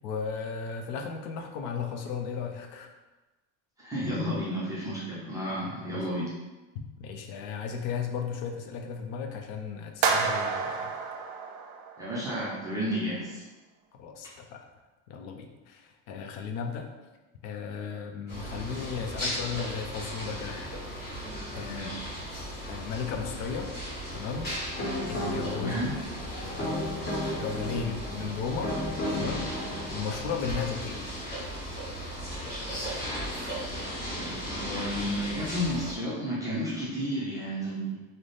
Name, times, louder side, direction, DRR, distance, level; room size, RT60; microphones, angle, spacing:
voice 1, 0.0-2.9 5.6-6.0 7.0-10.9 14.0-14.6 15.1-16.9 17.4-20.7 21.5-22.2 22.7-23.7 24.1-24.5 25.1-25.8 26.4-28.7 29.1-29.5 29.9-31.1, left 6 dB, 70° left, 4 dB, 0.6 m, -35 dB
voice 2, 3.8-6.3 12.0-13.4 21.7-22.1 25.5-25.9 34.2-38.0, equal, 10° right, -8 dB, 0.4 m, -32 dB
sound 1, 10.0-12.3, right 5 dB, 80° right, 0.5 m, -29 dB
sound 2, 18.3-35.9, equal, 25° left, 1.2 m, -36 dB
sound 3, 24.4-30.2, left 1 dB, 50° left, 1.2 m, -34 dB
3.3 x 2.0 x 3.8 m, 1.1 s
cardioid pair, 170°, 38 cm